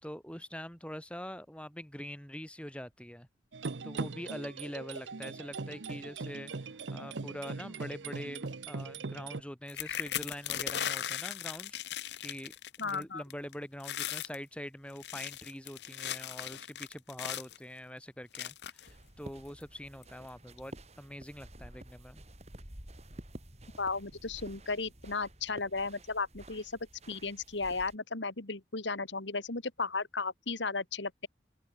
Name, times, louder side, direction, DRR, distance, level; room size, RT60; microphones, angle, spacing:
voice 1, 0.0-3.3 3.8-11.8 12.2-12.5 12.8-22.2, equal, 5° left, 4.8 m, -44 dB
sound 1, 3.5-9.4, right 3 dB, 80° right, 0.9 m, -40 dB
sound 2, 9.7-13.0 13.3-13.5 13.8-14.4 14.9-17.6 18.3-18.9 19.6-19.7 20.0-20.3, left 10 dB, 70° left, 0.8 m, -38 dB
voice 2, 12.8-13.2 23.8-26.8 27.1-31.3, left 4 dB, 85° left, 2.4 m, -35 dB
sound 3, 18.9-28.0, right 1 dB, 35° right, 4.6 m, -51 dB
open air
head